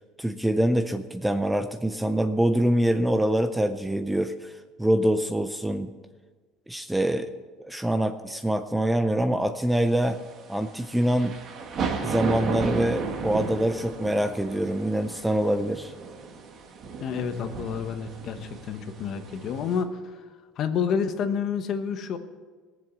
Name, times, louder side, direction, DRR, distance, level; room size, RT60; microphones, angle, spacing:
voice 1, 0.2-5.9 6.7-7.3 7.6-10.2 10.5-11.3 12.0-15.9, right 1 dB, 5° right, 9 dB, 0.4 m, -25 dB
sound 1, 9.8-19.8, right 5 dB, 35° right, 1.3 m, -34 dB
voice 2, 17.0-20.2 20.6-22.2, left 6 dB, 40° left, 8 dB, 1.0 m, -29 dB
19.0 x 7.5 x 6.8 m, 1.5 s
cardioid pair, 165°, 0 cm